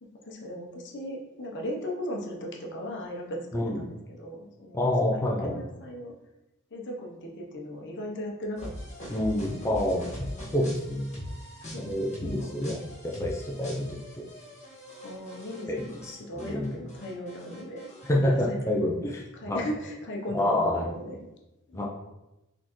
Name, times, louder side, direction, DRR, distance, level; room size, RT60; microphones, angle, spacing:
voice 1, 0.0-4.8 5.1-6.1 6.7-8.7 9.0-9.2 9.6-9.8 10.3-10.7 11.7-12.6 15.0-17.9 18.2-18.9 19.3-21.3 21.7-21.9, equal, 60° left, 0 dB, 0.8 m, -37 dB
voice 2, 4.7-5.6 9.1-10.3 10.5-11.2 11.7-12.8 13.0-14.2 15.7-16.7 18.0-19.6 20.3-20.9 21.7-21.9, left 1 dB, 15° left, -3 dB, 0.5 m, -28 dB
sound 1, 8.6-16.1 16.4-18.1, left 1 dB, 35° left, 1.5 m, -42 dB
4.3 x 3.6 x 3.0 m, 0.97 s
head